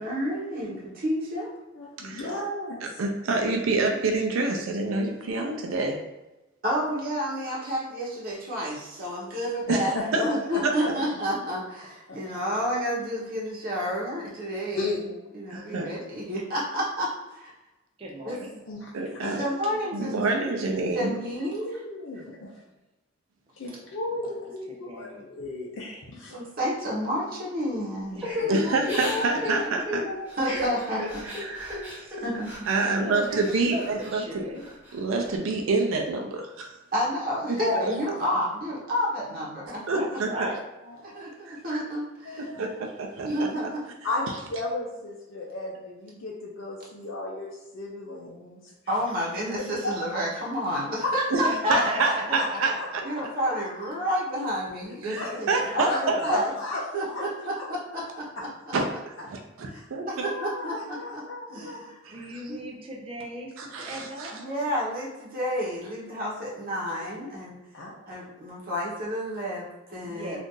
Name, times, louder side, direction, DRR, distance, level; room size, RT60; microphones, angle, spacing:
voice 1, 0.0-1.5 2.3-2.4 6.6-9.9 10.2-15.0 15.3-17.5 18.2-18.4 19.4-20.4 20.9-21.7 26.3-28.7 30.4-31.2 32.2-32.7 36.9-40.2 41.0-42.5 43.2-43.8 48.9-51.8 52.3-52.4 53.0-56.5 56.9-58.5 59.7-59.8 60.1-61.2 61.5-62.0 62.5-62.7 64.3-67.6 68.1-70.4, equal, 45° right, -5 dB, 0.9 m, -30 dB
voice 2, 1.7-2.8 9.7-10.9 12.1-12.2 14.7-15.0 18.7-19.4 21.6-22.5 23.6-26.4 28.9-29.6 30.0-30.6 37.6-37.9 42.2-42.6 44.0-48.6 49.8-49.9 51.0-51.1 51.6-53.6 55.1-55.3 55.8-57.2 57.5-57.6 59.7-59.8 60.2-61.8 66.7-67.1 67.7-67.9, left 2 dB, 65° left, -4 dB, 0.5 m, -34 dB
voice 3, 3.0-6.0 9.7-10.2 10.6-10.7 15.5-15.9 18.9-19.4 19.9-21.1 28.5-30.1 31.2-31.9 32.7-34.5 34.9-36.8 39.9-40.3 41.5-41.6 42.4-43.3 51.3-51.4 51.7-53.0 55.0-56.4 58.7-58.9 59.3-60.3 62.0-62.4 63.6-64.4, right 3 dB, 90° right, 2 dB, 0.4 m, -27 dB
voice 4, 18.0-18.6 23.6-23.8 24.7-25.3 28.1-28.5 28.8-28.9 31.9-32.2 32.8-34.6 38.3-38.4 40.0-40.7 51.4-52.8 55.1-56.4 62.1-64.4 70.0-70.4, right 1 dB, 30° right, 0 dB, 0.5 m, -37 dB
Crying sobbing / Breathing, 28.2-32.8 33.2-34.2 34.6-35.3, left 1 dB, 10° right, 0.9 m, -34 dB
2.6 x 2.5 x 3.7 m, 1.0 s
head